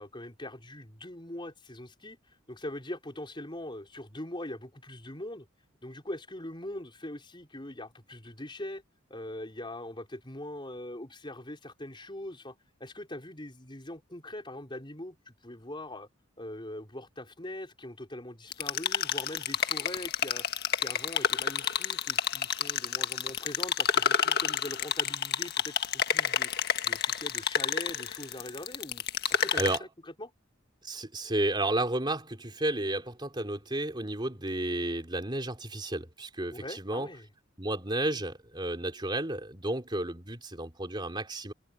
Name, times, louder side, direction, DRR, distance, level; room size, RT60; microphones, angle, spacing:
voice 1, 0.0-2.2 2.5-5.5 5.8-8.8 9.1-12.5 12.8-16.1 16.4-20.5 20.8-29.0 29.3-30.3 36.5-37.3, left 1 dB, 25° left, 4.8 m, -42 dB
sound 1, 18.5-29.8, left 8 dB, 50° left, 1.6 m, -29 dB
voice 2, 29.5-29.8 30.8-37.1 37.6-41.5, right 1 dB, 25° right, 3.7 m, -32 dB
head